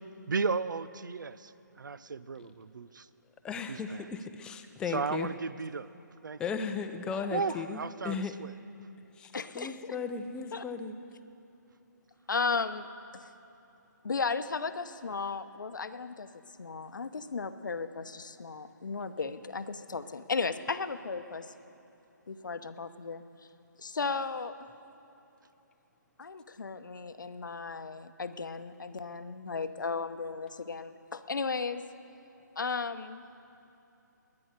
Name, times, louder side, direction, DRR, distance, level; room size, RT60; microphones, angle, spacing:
voice 1, 0.3-1.5 1.8-3.1 3.7-4.1 4.9-5.9 6.2-6.4 7.3-8.5, right 4 dB, 75° right, 16 dB, 0.6 m, -34 dB
voice 2, 3.4-5.3 6.4-8.3 9.2-11.0, left 5 dB, 10° left, 6 dB, 0.5 m, -36 dB
voice 3, 9.3-10.0 10.5-10.6 12.3-12.9 13.1-13.3 14.0-16.3 16.6-21.5 22.3-23.2 23.8-24.7 26.2-31.8 32.6-33.2, left 4 dB, 75° left, 11 dB, 0.8 m, -35 dB
21.5 x 9.7 x 6.6 m, 2.9 s
figure-of-eight pair, 150°, 10 cm